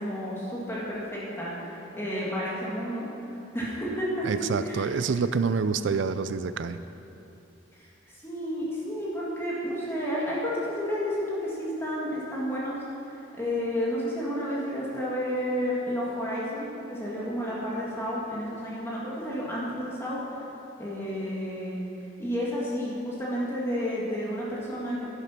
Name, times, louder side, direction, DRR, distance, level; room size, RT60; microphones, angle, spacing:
voice 1, 0.0-3.1 3.5-4.3 4.6-4.9 7.8-7.9 8.2-12.8 13.4-20.2 20.8-21.8 22.2-25.1, equal, 15° left, -7 dB, 2.2 m, -31 dB
voice 2, 4.3-6.8, right 5 dB, 65° right, 12 dB, 0.4 m, -27 dB
11.0 x 11.0 x 5.9 m, 2.8 s
head